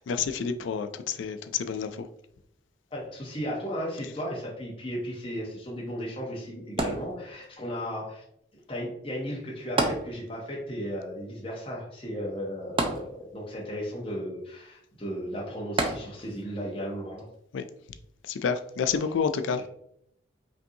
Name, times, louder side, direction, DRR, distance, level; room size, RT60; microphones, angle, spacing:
voice 1, 0.0-2.1 4.0-4.1 17.5-17.6 18.2-19.7, left 6 dB, 85° left, 0.3 m, -29 dB
voice 2, 2.9-8.2 8.7-17.3, equal, 30° left, 0.8 m, -35 dB
sound 1, 6.8-7.7 9.8-10.6 10.9-11.0 12.8-13.6 15.8-16.5 17.2-17.3, right 2 dB, 30° right, 0.5 m, -29 dB
5.2 x 2.7 x 2.7 m
head